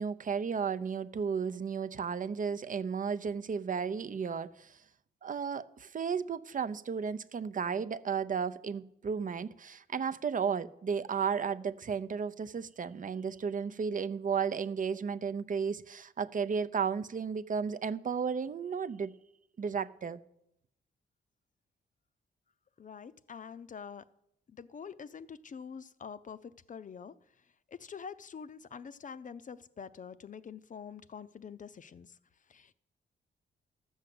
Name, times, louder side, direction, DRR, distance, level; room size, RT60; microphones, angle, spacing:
voice 1, 0.0-4.8 5.2-19.1 19.6-20.2, right 6 dB, 45° right, 0.6 m, -34 dB
voice 2, 22.8-24.1 24.5-32.2 32.5-32.7, left 6 dB, 45° left, 0.6 m, -46 dB
13.0 x 6.4 x 7.6 m
cardioid pair, 90°, 19 cm